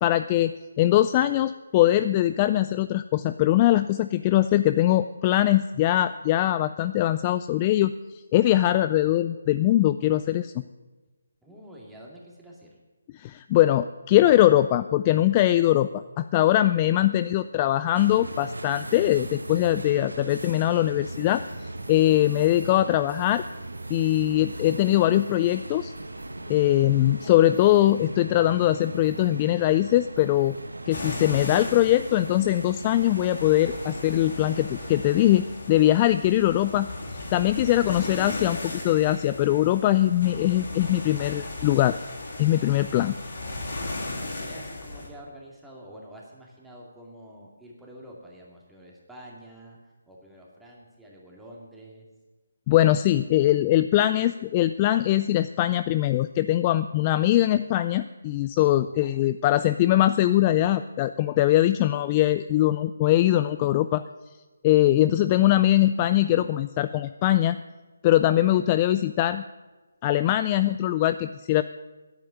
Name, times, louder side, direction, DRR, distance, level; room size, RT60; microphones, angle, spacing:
voice 1, 0.0-7.9 8.3-10.6 13.1-21.4 21.9-23.4 23.9-25.9 26.5-30.5 30.9-36.9 37.3-42.0 42.4-43.1 52.7-64.0 64.6-67.6 68.0-69.4 70.0-71.6, left 14 dB, 25° left, 12 dB, 0.3 m, -22 dB
voice 2, 11.4-12.7 16.9-17.3 44.3-49.8 50.1-52.0 58.8-59.2, right 1 dB, 5° right, -3 dB, 2.2 m, -48 dB
sound 1, 17.9-35.4, right 2 dB, 90° right, 1.0 m, -38 dB
sound 2, 30.9-45.1, left 2 dB, 60° left, 3.4 m, -36 dB
10.5 x 8.7 x 8.7 m, 1.2 s
figure-of-eight pair, 155°, 0 cm